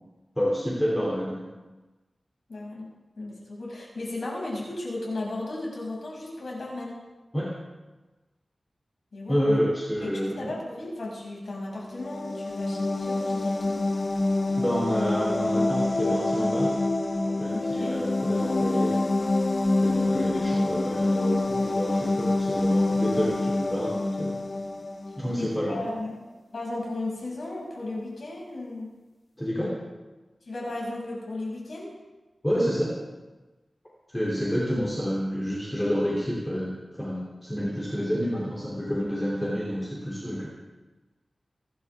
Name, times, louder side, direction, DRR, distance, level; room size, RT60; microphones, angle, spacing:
voice 1, 0.3-1.4 7.3-7.5 9.3-10.5 14.6-16.8 17.2-19.0 19.8-24.4 25.2-25.8 29.4-29.7 32.4-32.9 34.1-40.5, equal, 10° left, -5 dB, 3.1 m, -29 dB
voice 2, 2.5-7.0 9.1-9.6 10.0-13.8 17.5-18.0 25.4-26.2 26.5-28.9 30.4-31.9, left 2 dB, 80° left, -4 dB, 6.6 m, -35 dB
sound 1, 11.9-25.5, left 2 dB, 45° left, 1.0 m, -26 dB
25.0 x 12.0 x 3.6 m, 1.2 s
wide cardioid pair, 100°, 0 cm